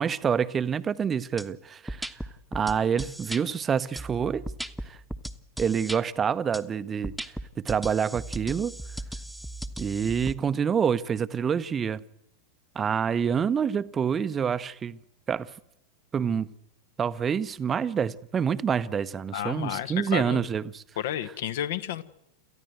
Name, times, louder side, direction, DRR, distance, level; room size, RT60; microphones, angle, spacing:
voice 1, 0.0-2.3 2.5-4.5 4.8-5.0 5.6-7.1 7.6-8.7 9.8-12.0 12.7-15.0 15.3-15.5 16.1-16.5 17.0-20.8, right 7 dB, 20° right, 0.8 m, -27 dB
sound 1, 1.4-1.5 1.9-3.4 4.0-6.0 6.5-6.6 7.0-10.3, right 1 dB, ahead, 1.2 m, -36 dB
voice 2, 19.3-20.4 21.0-22.0, left 11 dB, 55° left, 1.3 m, -31 dB
28.0 x 14.5 x 8.0 m
figure-of-eight pair, 90°, 0 cm